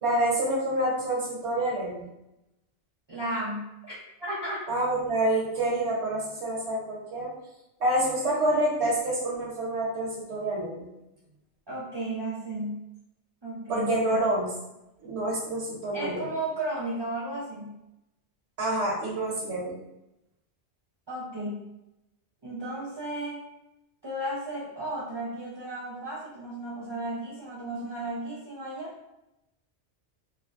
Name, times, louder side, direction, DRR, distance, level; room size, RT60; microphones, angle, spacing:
voice 1, 0.0-2.0 4.7-7.3 7.8-10.9 13.7-14.5 15.0-16.3 18.6-19.8, right 1 dB, 65° right, -4 dB, 1.3 m, -27 dB
voice 2, 3.1-3.9 4.2-4.6 11.7-12.8 13.4-13.9 15.9-17.7 21.1-21.7 22.4-23.4 24.0-28.9, right 1 dB, 40° right, -8 dB, 0.3 m, -34 dB
3.2 x 2.1 x 2.5 m, 0.89 s
omnidirectional pair, 1.2 m